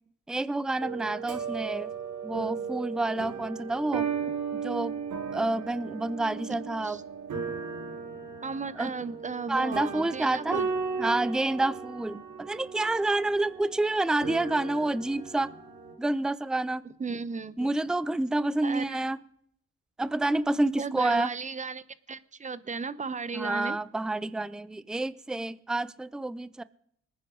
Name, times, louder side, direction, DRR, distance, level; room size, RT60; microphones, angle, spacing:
voice 1, 0.3-1.9 2.2-4.1 4.5-5.0 5.3-7.0 8.8-8.9 9.5-10.6 11.0-15.5 16.0-16.8 17.6-19.2 20.0-21.3 23.3-26.6, right 2 dB, ahead, 0.5 m, -28 dB
sound 1, 0.8-15.9, right 6 dB, 75° right, 3.6 m, -36 dB
voice 2, 8.4-10.7 12.1-12.2 16.8-17.7 18.6-19.0 20.8-23.8, right 4 dB, 25° right, 0.8 m, -35 dB
24.5 x 9.8 x 3.8 m
cardioid pair, 90°, 30 cm